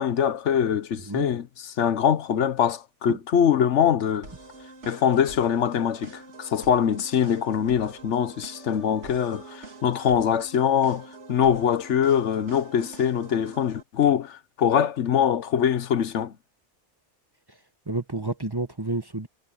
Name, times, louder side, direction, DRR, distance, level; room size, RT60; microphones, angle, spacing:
voice 1, 0.0-4.3 4.9-16.3, left 8 dB, 85° left, 1.2 m, -23 dB
sound 1, 4.2-13.8, right 3 dB, 80° right, 2.7 m, -45 dB
voice 2, 17.9-19.3, right 2 dB, 20° right, 0.9 m, -30 dB
omnidirectional pair, 1.2 m